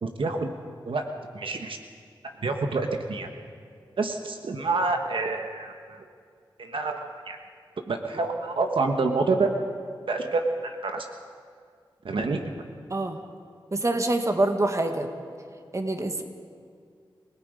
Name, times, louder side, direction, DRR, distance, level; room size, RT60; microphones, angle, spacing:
voice 1, 0.0-0.5 0.8-1.0 1.3-1.8 2.4-3.3 4.0-6.0 6.6-7.4 7.9-9.5 10.1-11.1 12.0-12.5, right 3 dB, 75° right, 4 dB, 1.5 m, -27 dB
voice 2, 13.7-15.1 15.7-16.2, right 2 dB, 35° right, 5 dB, 1.9 m, -25 dB
29.0 x 18.0 x 5.2 m, 2.2 s
wide cardioid pair, 70°, 9 cm